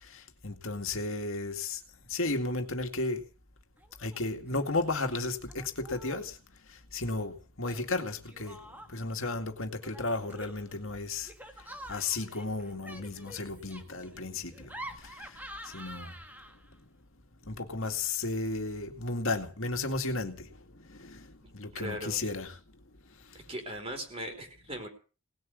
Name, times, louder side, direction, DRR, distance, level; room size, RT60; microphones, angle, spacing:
voice 1, 0.0-1.8 2.1-3.2 4.0-6.4 6.7-8.6 8.9-11.3 11.6-16.2 17.5-22.6 23.3-23.4, left 3 dB, 65° left, 2.1 m, -34 dB
Laughter, 3.8-4.2 4.5-5.1 5.5-6.3 7.6-9.2 9.8-16.8, right 1 dB, 10° right, 1.7 m, -48 dB
voice 2, 21.7-22.2 23.3-24.9, equal, 25° right, 4.3 m, -39 dB
19.0 x 7.8 x 9.4 m
head